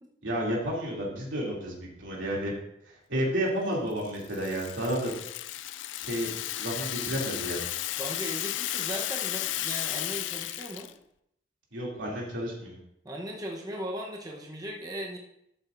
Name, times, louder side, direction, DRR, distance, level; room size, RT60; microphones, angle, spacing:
voice 1, 0.2-2.5 2.8-5.1 6.0-7.6 11.7-12.8, equal, 85° right, -3 dB, 2.8 m, -31 dB
Rattle (instrument), 4.0-10.9, left 13 dB, 70° left, 0.4 m, -34 dB
voice 2, 8.0-10.9 13.0-15.2, right 1 dB, 20° right, -1 dB, 0.9 m, -37 dB
12.0 x 7.6 x 2.6 m, 0.78 s
head